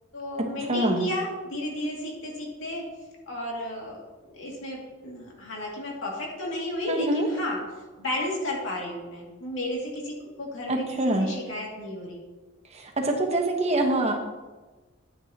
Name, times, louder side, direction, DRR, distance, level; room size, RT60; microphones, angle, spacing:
voice 1, 0.1-2.9 3.3-4.0 4.3-7.6 8.0-10.8 11.2-12.2, left 1 dB, 85° left, -2 dB, 2.4 m, -33 dB
voice 2, 0.7-1.1 6.9-7.3 10.7-11.3 12.7-14.1, right 1 dB, 35° right, 1 dB, 1.2 m, -25 dB
9.9 x 9.4 x 2.9 m, 1.2 s
head